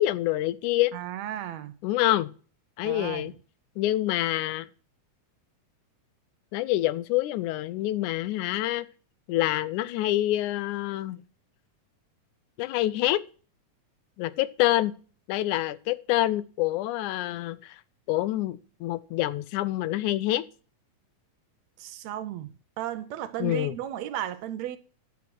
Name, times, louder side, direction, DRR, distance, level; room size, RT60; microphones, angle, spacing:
voice 1, 0.0-0.9 1.8-2.3 2.8-3.3 3.8-4.7 6.5-8.9 9.3-11.2 12.6-13.2 14.2-14.9 15.3-17.8 18.1-20.4 23.4-23.7, left 15 dB, 90° left, 2.1 m, -26 dB
voice 2, 0.9-1.7 2.8-3.3 21.8-22.5 22.8-24.8, right 12 dB, 75° right, 1.8 m, -34 dB
10.5 x 7.1 x 6.1 m
omnidirectional pair, 3.4 m